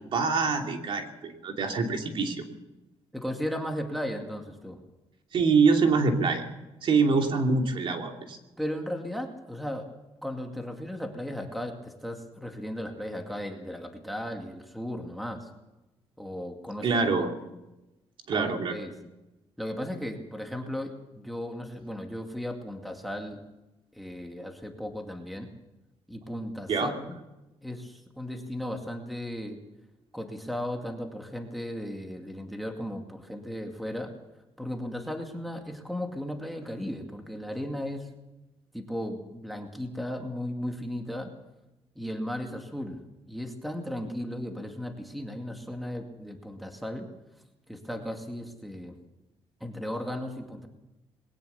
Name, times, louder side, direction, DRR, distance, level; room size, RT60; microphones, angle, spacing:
voice 1, 0.1-2.4 5.3-6.4 6.8-8.4 16.8-17.3 18.3-18.8 26.7-26.9, right 4 dB, 55° right, 3 dB, 2.9 m, -25 dB
voice 2, 3.1-4.8 8.6-9.9 10.2-15.5 16.2-17.0 18.3-18.9 19.6-23.4 23.9-25.5 26.1-27.2 27.6-29.6 30.1-34.1 34.6-38.1 38.7-41.3 42.0-43.0 43.3-47.1 47.7-49.0 49.6-50.7, equal, ahead, 4 dB, 2.3 m, -36 dB
21.5 x 18.5 x 6.9 m, 0.98 s
cardioid pair, 145°, 10 cm